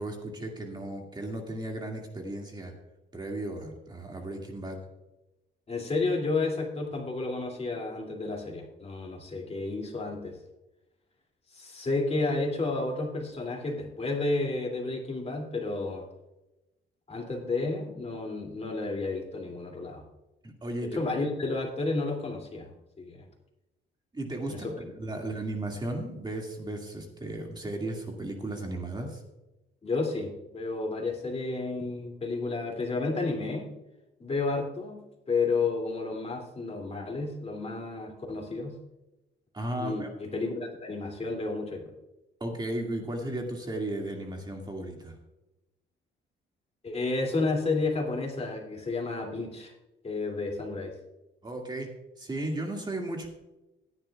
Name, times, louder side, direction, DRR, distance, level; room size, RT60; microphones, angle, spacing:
voice 1, 0.0-2.7 3.1-4.8 20.4-21.0 24.1-24.7 25.0-29.2 39.5-40.1 42.4-45.1 51.4-51.9 52.2-53.3, right 1 dB, 20° right, 1 dB, 2.2 m, -35 dB
voice 2, 5.7-10.4 11.5-16.1 17.1-20.0 20.9-22.7 23.0-23.2 24.5-24.7 29.8-33.7 34.2-35.0 35.3-38.8 39.8-41.9 46.8-49.7 50.0-50.9, left 3 dB, 30° left, 0 dB, 2.8 m, -31 dB
16.0 x 11.0 x 2.4 m, 0.99 s
cardioid pair, 90°, 20 cm